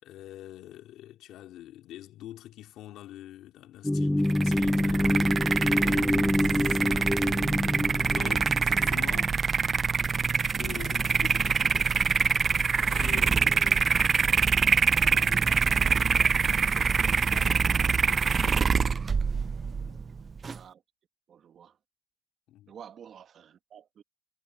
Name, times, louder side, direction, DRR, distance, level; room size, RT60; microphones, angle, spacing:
voice 1, 0.0-7.2 8.1-9.4 10.6-12.4 12.7-13.9 15.0-18.8 19.7-20.1 22.5-22.7, left 13 dB, 90° left, 3.8 m, -46 dB
sound 1, 3.8-9.3, left 1 dB, 10° left, 0.9 m, -27 dB
sound 2, 4.2-20.6, right 5 dB, 40° right, 0.5 m, -25 dB
voice 2, 20.5-20.8 21.3-21.8 22.7-24.0, right 8 dB, 60° right, 2.1 m, -49 dB
cardioid pair, 90°, 0 cm